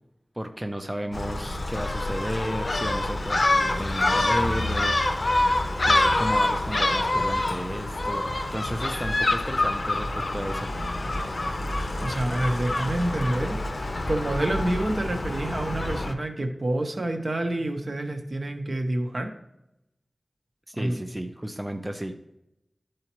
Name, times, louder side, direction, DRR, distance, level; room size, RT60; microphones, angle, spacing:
voice 1, 0.3-10.7 20.7-22.2, equal, 15° right, 5 dB, 0.6 m, -33 dB
Gull seagull, 1.1-16.1, left 2 dB, 55° left, 0.6 m, -26 dB
voice 2, 12.0-13.6 14.1-19.3 20.7-21.0, right 1 dB, 60° right, 4 dB, 1.1 m, -28 dB
12.5 x 4.8 x 3.1 m, 0.84 s
wide cardioid pair, 60°, 0 cm